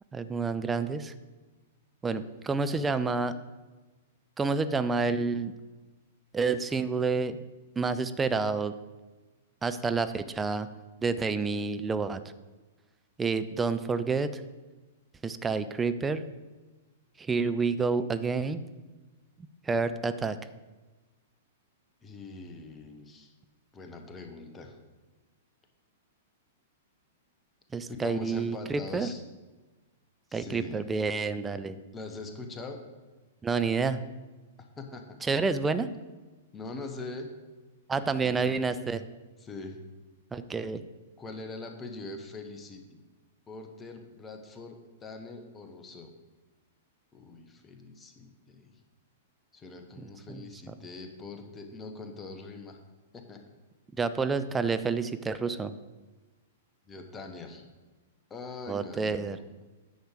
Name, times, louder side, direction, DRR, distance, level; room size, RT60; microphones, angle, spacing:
voice 1, 0.1-1.1 2.0-3.3 4.4-5.5 6.3-7.4 7.8-8.7 9.6-10.7 11.0-12.2 13.2-14.3 15.2-16.2 17.2-18.6 19.7-20.4 27.7-29.1 30.3-31.8 33.4-34.0 35.3-35.9 37.9-39.0 40.3-40.8 54.0-55.8 58.7-59.4, right 4 dB, 15° right, 11 dB, 0.4 m, -29 dB
voice 2, 22.0-23.3 23.7-24.8 27.9-29.2 30.3-30.8 31.9-32.8 34.8-35.2 36.5-37.3 38.0-38.6 39.4-39.8 41.2-43.0 43.5-46.1 47.1-48.8 49.5-52.8 53.1-53.4 56.9-57.7 58.3-59.6, left 3 dB, 20° left, 4 dB, 1.2 m, -43 dB
9.4 x 6.5 x 4.7 m, 1.2 s
figure-of-eight pair, 105°, 0 cm